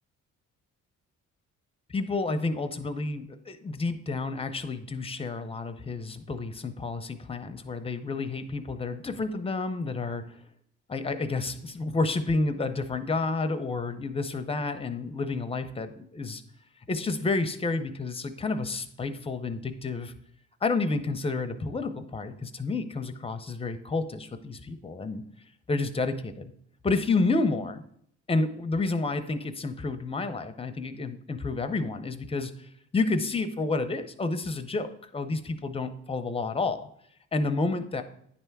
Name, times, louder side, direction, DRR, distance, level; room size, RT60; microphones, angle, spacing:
voice 1, 1.9-10.4 10.9-16.4 16.9-20.1 20.6-25.2 25.7-26.5 26.8-27.8 28.3-36.8 37.3-38.0, left 3 dB, 20° left, 9 dB, 0.6 m, -30 dB
9.7 x 3.4 x 4.6 m, 0.69 s
cardioid pair, 90°, 30 cm